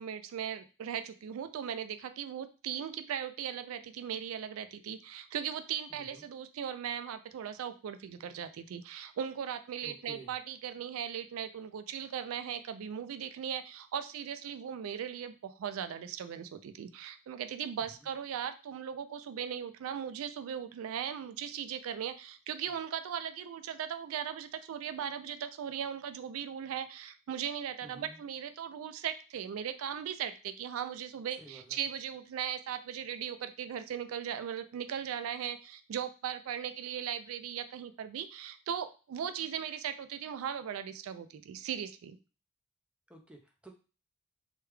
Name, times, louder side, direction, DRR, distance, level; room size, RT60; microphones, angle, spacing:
voice 1, 0.0-42.2, right 8 dB, 85° right, 10 dB, 0.3 m, -38 dB
voice 2, 6.0-6.3 9.8-10.3 27.8-28.2 31.4-31.8 43.1-43.7, right 2 dB, 5° right, 2 dB, 0.4 m, -52 dB
3.2 x 2.2 x 3.2 m, 0.33 s
head